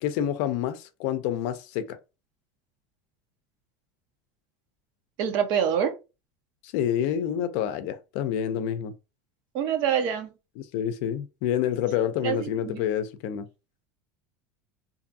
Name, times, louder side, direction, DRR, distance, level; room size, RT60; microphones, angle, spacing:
voice 1, 0.0-2.0 6.6-8.9 10.6-13.5, left 10 dB, 65° left, 0.5 m, -28 dB
voice 2, 5.2-5.9 9.5-10.3 12.2-12.8, right 8 dB, 60° right, 0.8 m, -26 dB
2.6 x 2.4 x 2.6 m
supercardioid pair, 115°, 8 cm